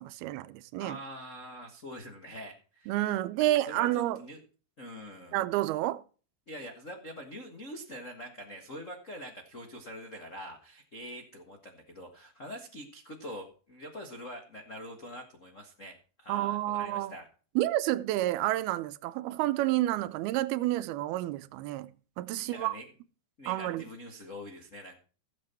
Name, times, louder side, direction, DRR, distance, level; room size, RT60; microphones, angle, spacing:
voice 1, 0.0-1.0 2.9-4.2 5.3-6.0 16.3-17.1 17.6-21.9 22.2-22.8 23.5-23.9, right 15 dB, 85° right, 2.6 m, -29 dB
voice 2, 0.8-3.0 3.4-4.4 4.8-5.4 6.5-17.3 22.4-22.9 23.4-25.0, equal, 65° left, 0.7 m, -44 dB
16.0 x 7.6 x 4.4 m
omnidirectional pair, 4.4 m